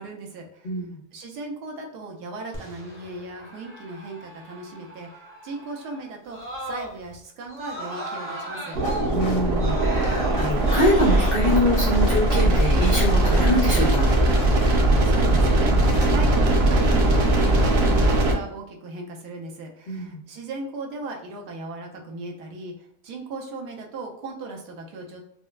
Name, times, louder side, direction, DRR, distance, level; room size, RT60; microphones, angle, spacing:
voice 1, 0.0-0.7 1.1-6.4 6.6-8.8 15.0-22.7 23.0-25.2, right 3 dB, 80° right, 1 dB, 1.3 m, -37 dB
voice 2, 0.6-1.0 9.1-14.1 19.9-20.2, left 1 dB, 70° left, -3 dB, 0.5 m, -24 dB
Screaming, 2.5-7.1 7.5-11.3, right 2 dB, 20° right, 0.3 m, -36 dB
sound 1, 8.7-18.3, right 1 dB, 60° right, 0.7 m, -20 dB
sound 2, 8.8-15.4 15.8-16.1, left 2 dB, 90° left, 1.4 m, -38 dB
4.3 x 2.1 x 2.3 m, 0.72 s
omnidirectional pair, 1.8 m